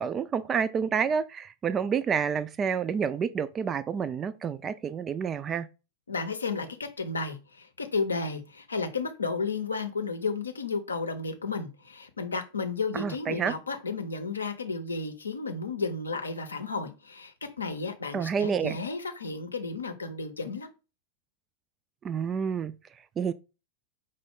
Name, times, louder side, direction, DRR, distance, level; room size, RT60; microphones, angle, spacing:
voice 1, 0.0-5.7 12.9-13.5 18.1-18.8 22.0-22.7 23.2-23.3, right 7 dB, 25° right, 0.3 m, -29 dB
voice 2, 6.1-20.7, left 4 dB, 75° left, 0.7 m, -33 dB
5.1 x 2.2 x 3.6 m
figure-of-eight pair, 90°, 0 cm